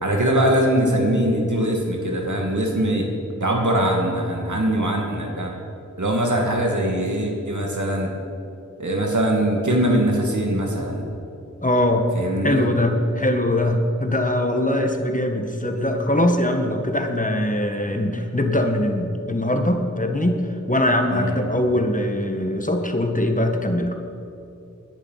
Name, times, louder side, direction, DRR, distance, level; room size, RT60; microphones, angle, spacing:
voice 1, 0.0-3.1 3.4-5.5 6.0-8.1 8.8-11.0 12.1-12.6 21.1-21.4, right 1 dB, 80° right, 0 dB, 2.5 m, -22 dB
voice 2, 11.6-12.1 12.4-20.4 20.7-24.0, left 1 dB, 25° left, 4 dB, 1.7 m, -22 dB
20.5 x 11.0 x 5.8 m, 2.7 s
wide cardioid pair, 45°, 29 cm